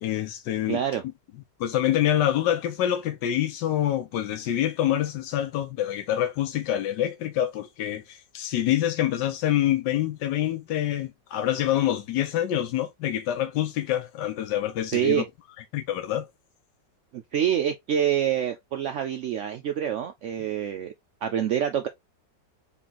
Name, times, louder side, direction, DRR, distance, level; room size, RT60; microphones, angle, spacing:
voice 1, 0.0-0.8 1.6-15.2 15.7-16.3, left 12 dB, 80° left, 1.4 m, -26 dB
voice 2, 0.7-1.0 14.9-15.2 17.1-20.9 21.2-21.9, right 9 dB, 90° right, 0.6 m, -26 dB
4.2 x 2.9 x 3.8 m
omnidirectional pair, 1.9 m